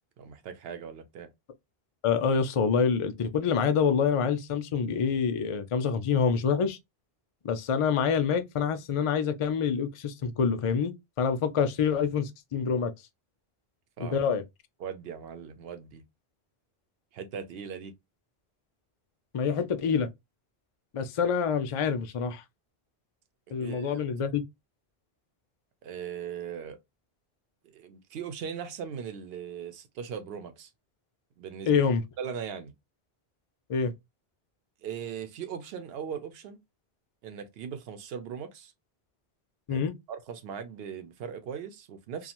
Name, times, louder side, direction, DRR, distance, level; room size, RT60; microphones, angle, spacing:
voice 1, 0.2-1.3 14.0-14.2 14.8-16.0 17.1-17.9 23.5-24.0 25.8-26.8 27.7-30.7 31.4-31.9 32.2-32.7 34.8-36.6 37.2-38.7 39.7-39.8 40.1-42.3, right 7 dB, 70° right, 0.8 m, -39 dB
voice 2, 2.0-6.8 7.4-10.9 11.2-12.9 14.0-14.4 19.3-20.1 20.9-22.4 23.5-24.4 31.7-32.0 33.7-33.9 39.7-39.9, left 6 dB, 55° left, 0.3 m, -26 dB
2.4 x 2.4 x 2.9 m
omnidirectional pair, 1.1 m